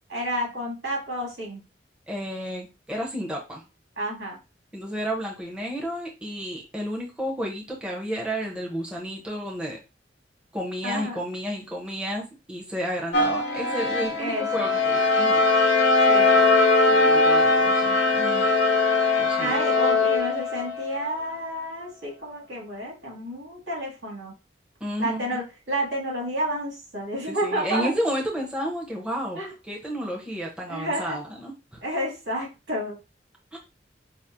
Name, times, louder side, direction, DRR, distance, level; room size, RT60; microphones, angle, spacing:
voice 1, 0.1-1.6 4.0-4.4 10.8-11.2 14.1-14.8 16.1-16.5 19.4-24.3 25.0-27.9 29.3-29.5 30.7-31.2 31.8-33.0, right 1 dB, 80° right, -2 dB, 2.1 m, -30 dB
voice 2, 2.1-3.6 4.7-9.8 10.5-16.0 16.9-18.7 19.2-19.6 24.8-25.4 27.3-31.8 33.5-33.6, equal, 5° right, -3 dB, 0.7 m, -32 dB
sound 1, 13.1-21.2, left 3 dB, 90° left, 0.7 m, -21 dB
5.7 x 2.0 x 2.6 m, 0.28 s
head